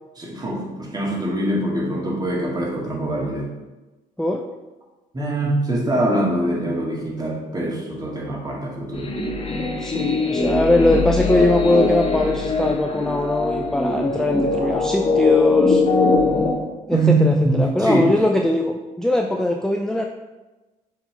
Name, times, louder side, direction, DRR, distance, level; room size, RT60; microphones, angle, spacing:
voice 1, 0.2-3.5 5.1-9.1 16.9-18.0, right 1 dB, 25° right, -2 dB, 2.0 m, -23 dB
sound 1, 8.9-16.5, left 3 dB, 35° left, 1.3 m, -21 dB
voice 2, 9.8-15.8 16.9-20.1, left 1 dB, 5° left, 2 dB, 0.5 m, -21 dB
6.6 x 3.5 x 4.5 m, 1.1 s
supercardioid pair, 80°, 16 cm